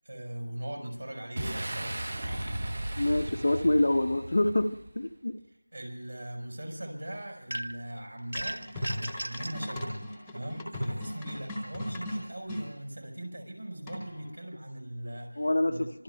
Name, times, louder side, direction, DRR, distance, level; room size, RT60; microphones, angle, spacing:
voice 1, 0.0-2.0 5.7-15.9, right 1 dB, 50° right, 2 dB, 4.8 m, -40 dB
Boom, 1.4-5.0, right 1 dB, 30° right, 0.9 m, -36 dB
voice 2, 3.0-4.6 5.0-5.3 15.4-15.7, left 1 dB, 40° left, 7 dB, 0.8 m, -25 dB
sound 1, 7.5-7.9 8.3-9.6, right 1 dB, 75° right, 0.7 m, -36 dB
sound 2, 8.3-12.6 13.9-14.3, equal, ahead, 1.2 m, -37 dB
26.0 x 24.5 x 2.3 m, 0.81 s
figure-of-eight pair, 180°, 0 cm